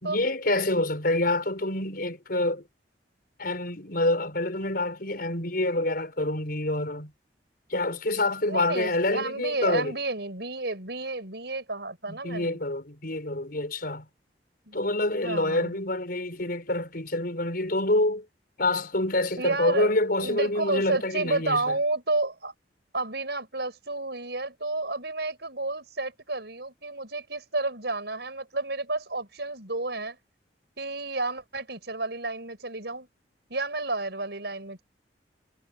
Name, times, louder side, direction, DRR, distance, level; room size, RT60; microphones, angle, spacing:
voice 1, 0.0-2.6 3.4-7.1 7.7-10.0 12.1-14.1 14.7-18.3 18.6-21.8, left 2 dB, 55° left, 5.2 m, -27 dB
voice 2, 8.5-12.6 14.7-14.8 15.1-15.8 19.4-19.9 20.2-22.5 22.9-30.2 30.8-33.1 33.5-34.8, right 2 dB, 70° right, 7.2 m, -31 dB
head